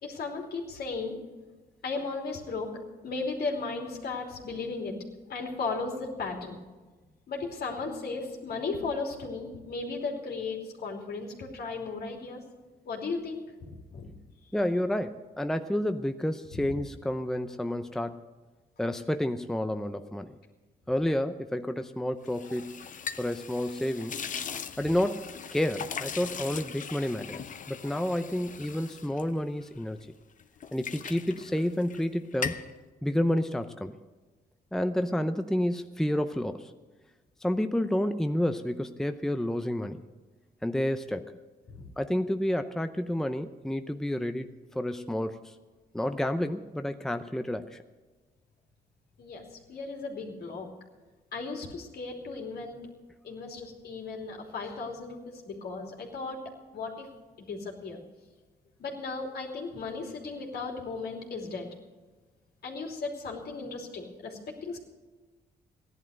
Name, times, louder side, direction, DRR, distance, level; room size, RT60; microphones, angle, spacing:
voice 1, 0.0-1.1 1.8-2.7 3.0-4.9 5.3-6.6 7.3-12.4 12.8-14.1 16.5-16.8 41.7-41.8 49.2-50.7 51.3-52.8 53.2-56.4 56.7-57.1 57.4-58.0 58.8-61.7 62.6-64.8, left 4 dB, 70° left, 1 dB, 3.0 m, -36 dB
voice 2, 14.5-18.2 18.8-20.3 20.9-22.8 23.2-24.1 24.8-30.0 30.7-32.6 33.0-34.0 34.7-36.7 37.4-40.0 40.6-41.3 42.0-44.5 44.7-45.4 45.9-47.8, left 1 dB, 5° left, 8 dB, 0.6 m, -30 dB
sound 1, 22.2-30.0 30.4-32.1 32.3-32.7, left 7 dB, 50° left, 0.8 m, -40 dB
15.5 x 11.0 x 6.5 m, 1.3 s
cardioid pair, 90°, 17 cm